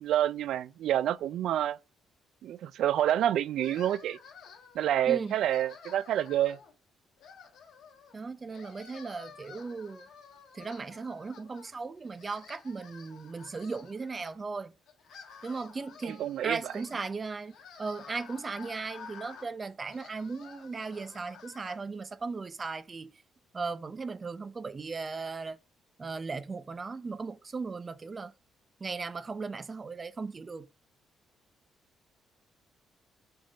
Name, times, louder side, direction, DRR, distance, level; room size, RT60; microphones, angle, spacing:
voice 1, 0.0-1.8 2.4-4.2 4.7-6.6 16.0-16.7, right 11 dB, 75° right, 0.3 m, -28 dB
sound 1, 3.6-4.9 5.3-6.7 7.2-8.2 8.5-11.7 12.0-14.3 14.9-21.8, left 6 dB, 80° left, 1.2 m, -51 dB
voice 2, 8.1-10.1 10.5-14.7 15.4-23.1 23.5-25.6 26.0-28.3 28.8-30.7, right 4 dB, 30° right, 0.6 m, -37 dB
5.1 x 3.7 x 5.1 m
cardioid pair, 90°, 0 cm